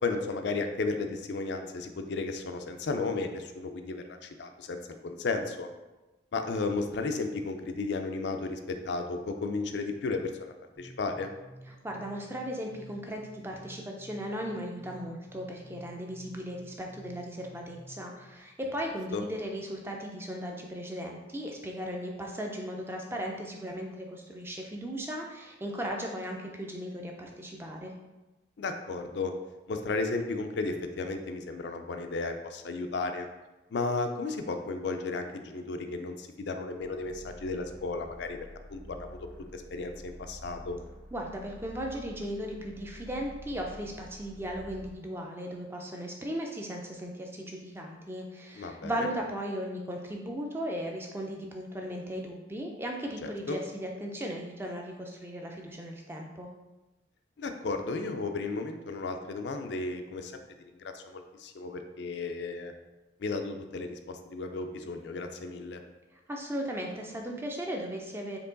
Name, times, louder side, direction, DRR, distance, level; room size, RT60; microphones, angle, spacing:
voice 1, 0.0-5.7 6.3-11.3 19.1-19.2 28.6-29.3 29.7-33.3 33.7-38.4 38.7-40.8 48.5-49.1 53.2-53.6 57.4-60.4 60.8-62.7 63.2-65.8, left 3 dB, 60° left, 6 dB, 0.4 m, -34 dB
sound 1, 10.8-18.3, right 1 dB, 40° right, 1.4 m, -52 dB
voice 2, 11.8-27.9 41.1-56.5 66.3-68.4, equal, 10° right, 1 dB, 0.4 m, -37 dB
sound 2, 36.8-45.0, equal, 75° right, 0.7 m, -49 dB
4.5 x 2.9 x 3.8 m, 1.1 s
head